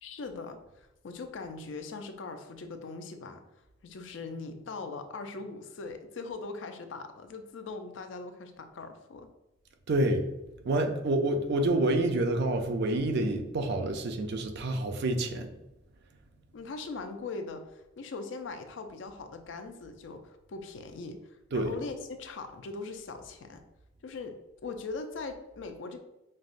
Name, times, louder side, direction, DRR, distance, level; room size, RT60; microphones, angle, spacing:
voice 1, 0.0-3.4 3.8-9.3 16.5-23.6 24.0-24.4 24.6-26.0, left 3 dB, 65° left, 7 dB, 0.4 m, -40 dB
voice 2, 9.9-10.3 10.6-15.5 21.5-21.7, right 1 dB, 55° right, 6 dB, 0.4 m, -28 dB
5.3 x 2.1 x 2.5 m, 0.95 s
head